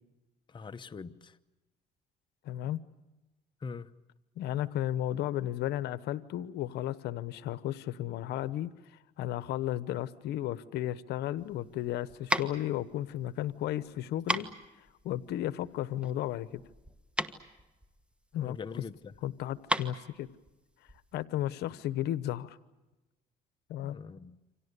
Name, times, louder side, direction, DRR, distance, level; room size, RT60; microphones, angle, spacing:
voice 1, 0.5-1.3 3.6-3.9 18.4-18.9 23.8-24.3, left 5 dB, 30° left, 9 dB, 0.9 m, -42 dB
voice 2, 2.4-2.8 4.4-8.7 9.2-14.5 15.0-16.6 18.3-18.8 19.2-20.3 21.1-22.6 23.7-24.0, left 13 dB, 80° left, 15 dB, 1.0 m, -34 dB
sound 1, 11.4-21.2, equal, 5° right, 1.5 m, -36 dB
28.5 x 26.0 x 6.8 m, 1.1 s
cardioid pair, 110°, 17 cm